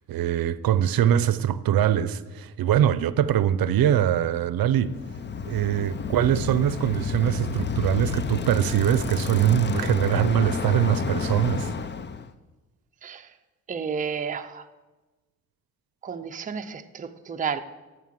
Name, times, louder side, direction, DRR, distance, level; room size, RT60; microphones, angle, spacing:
voice 1, 0.1-4.9 5.4-11.7, right 10 dB, 75° right, 0.6 m, -23 dB
Bicycle, 4.8-12.3, left 6 dB, 30° left, 0.5 m, -30 dB
voice 2, 13.7-14.6 16.0-17.6, right 6 dB, 20° right, 0.5 m, -32 dB
11.0 x 8.4 x 7.4 m
wide cardioid pair, 160°, 36 cm